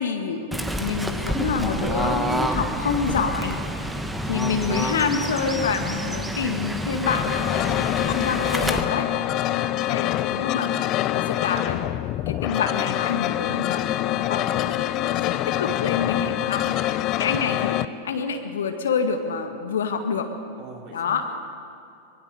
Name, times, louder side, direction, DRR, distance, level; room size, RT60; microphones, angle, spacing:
voice 1, 0.0-3.9 4.3-9.2 9.9-10.7 11.1-11.8 12.3-13.9 14.1-16.7 17.2-17.8 18.0-20.3 20.9-21.3, left 5 dB, 65° left, 6 dB, 2.0 m, -27 dB
Fowl / Bird, 0.5-8.8, right 1 dB, 5° right, 1.6 m, -28 dB
voice 2, 3.8-4.2 9.2-9.6 10.5-11.4 16.6-16.8 20.5-21.4, right 4 dB, 40° right, -1 dB, 5.0 m, -45 dB
sound 1, 7.1-17.9, left 14 dB, 40° left, 0.7 m, -25 dB
24.5 x 21.5 x 6.7 m, 2.6 s
figure-of-eight pair, 90°, 0 cm